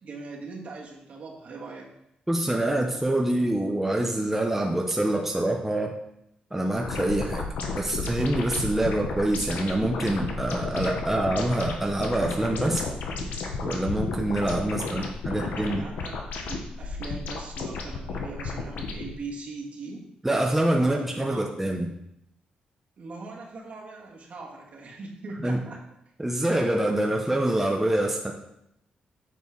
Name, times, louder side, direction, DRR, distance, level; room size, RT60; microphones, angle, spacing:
voice 1, 0.0-1.9 14.7-20.1 20.8-21.5 23.0-25.8, right 3 dB, 55° right, -2 dB, 1.9 m, -40 dB
voice 2, 2.3-5.9 6.5-12.8 13.6-15.8 20.2-21.9 25.4-25.6 26.2-28.3, right 1 dB, 10° right, 0 dB, 0.8 m, -25 dB
sound 1, 6.8-19.1, left 3 dB, 85° left, 1.0 m, -33 dB
8.3 x 4.4 x 4.6 m, 0.78 s
cardioid pair, 90°, 3 cm